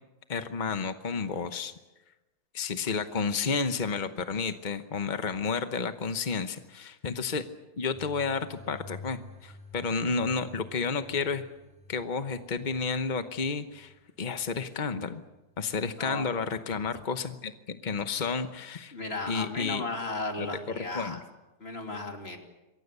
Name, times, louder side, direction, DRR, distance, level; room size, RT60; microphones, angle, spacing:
voice 1, 0.3-1.7 2.5-7.4 7.8-11.4 11.9-15.2 15.6-18.9 19.3-19.8 20.4-20.5 20.8-21.2, left 5 dB, 45° left, 9 dB, 0.6 m, -31 dB
sound 1, 7.9-16.0, left 4 dB, 5° right, 6.3 m, -51 dB
voice 2, 18.9-21.2 21.6-22.4, left 2 dB, 30° left, 3 dB, 3.1 m, -35 dB
27.5 x 23.0 x 6.8 m, 1.1 s
omnidirectional pair, 2.3 m